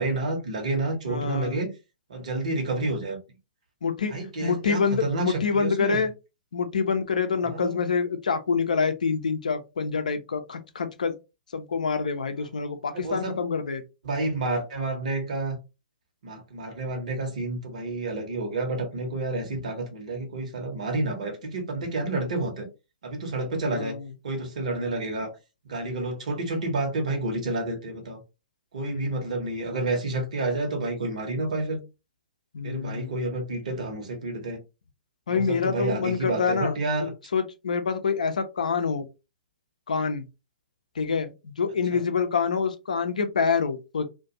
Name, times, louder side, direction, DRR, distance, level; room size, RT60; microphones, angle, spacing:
voice 1, 0.0-1.7 2.1-3.2 4.1-6.0 7.4-7.8 12.9-13.3 14.0-15.6 16.2-22.7 23.0-24.0 24.2-25.3 25.7-28.2 28.7-31.8 32.6-34.6 35.3-37.1 41.9-42.0, right 2 dB, 55° right, 0.9 m, -29 dB
voice 2, 1.1-1.6 3.8-4.1 4.4-6.1 6.5-11.2 11.5-13.8 23.6-24.1 28.8-29.3 32.5-33.2 35.3-36.8 37.3-39.1 39.9-40.2 41.0-44.1, left 5 dB, 60° left, 0.5 m, -26 dB
2.4 x 2.2 x 2.7 m
figure-of-eight pair, 115°, 5 cm